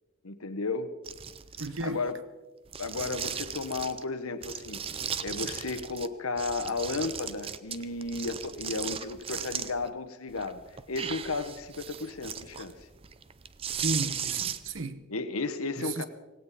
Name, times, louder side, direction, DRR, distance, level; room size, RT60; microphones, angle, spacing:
voice 1, 0.2-0.9 1.8-2.1 2.8-4.8 5.2-12.7 15.1-16.0, left 3 dB, 90° left, 1.2 m, -33 dB
sound 1, 1.0-2.1 2.7-4.0 4.4-6.1 6.4-9.9 10.3-14.8, right 8 dB, 25° right, 0.5 m, -37 dB
voice 2, 1.6-2.0 13.7-15.0 15.8-16.0, right 2 dB, 65° right, 1.1 m, -33 dB
18.0 x 17.5 x 4.2 m
head